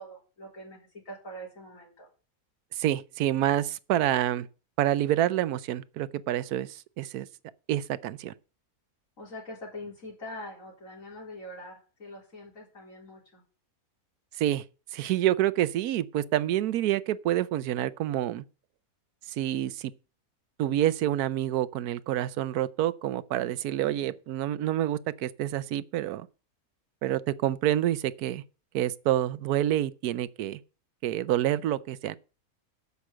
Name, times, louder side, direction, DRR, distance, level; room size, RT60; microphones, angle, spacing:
voice 1, 0.0-2.1 9.2-13.4 23.9-24.2, left 1 dB, 60° left, 4.5 m, -43 dB
voice 2, 2.8-4.5 4.8-7.3 7.7-8.3 14.4-14.6 14.9-18.4 19.3-19.9 20.6-26.3 27.0-28.4 28.7-30.6 31.0-32.2, right 12 dB, 85° right, 1.2 m, -27 dB
8.5 x 6.3 x 7.8 m
omnidirectional pair, 1.6 m